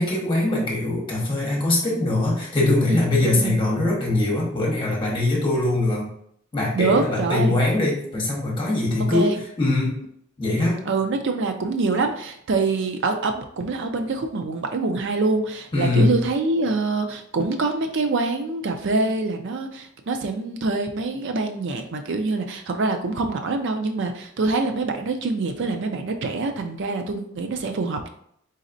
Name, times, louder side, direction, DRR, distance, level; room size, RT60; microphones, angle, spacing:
voice 1, 0.0-6.1 6.5-10.0 10.4-10.8 15.7-16.2, left 2 dB, 25° left, -3 dB, 1.3 m, -22 dB
voice 2, 2.9-3.6 6.7-7.6 9.0-9.4 10.9-28.1, right 3 dB, 60° right, 6 dB, 0.4 m, -25 dB
4.0 x 4.0 x 2.6 m, 0.69 s
head